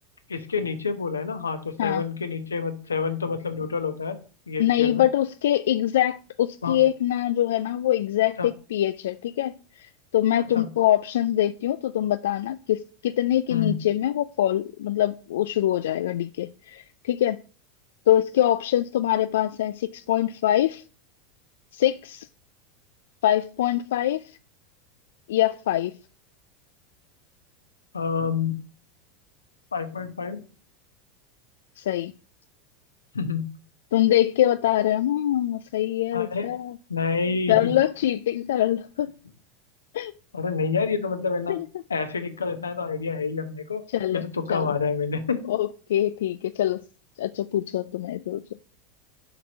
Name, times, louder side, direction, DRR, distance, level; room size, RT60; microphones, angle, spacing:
voice 1, 0.3-4.2 4.5-5.0 6.6-6.8 8.4-8.5 10.5-10.7 13.5-13.7 27.9-28.6 29.7-30.4 33.1-33.5 36.1-36.5 36.9-37.8 40.3-41.6 41.9-43.8 44.1-45.5, left 5 dB, 90° left, 1.0 m, -28 dB
voice 2, 4.6-17.4 18.1-20.8 21.7-22.3 23.2-24.2 25.3-25.9 31.8-32.1 33.9-36.7 37.5-39.1 39.9-40.1 41.5-41.7 43.9-44.2 44.5-44.7 45.5-46.8 47.2-48.4, left 12 dB, 70° left, 0.3 m, -24 dB
6.9 x 4.3 x 6.2 m
hypercardioid pair, 85°, 0 cm